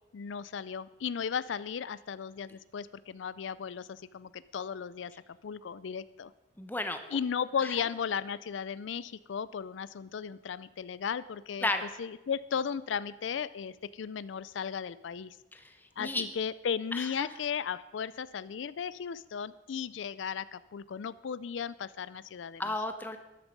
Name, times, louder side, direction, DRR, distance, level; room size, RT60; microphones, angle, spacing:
voice 1, 0.1-5.1 5.4-6.3 7.1-11.7 12.0-15.4 16.0-22.6, left 7 dB, 80° left, 17 dB, 0.4 m, -35 dB
voice 2, 6.6-7.0 11.6-11.8 15.5-15.7 16.0-16.2 16.9-17.3 22.6-23.2, left 2 dB, 10° left, 7 dB, 0.9 m, -33 dB
13.5 x 11.5 x 5.3 m, 0.98 s
head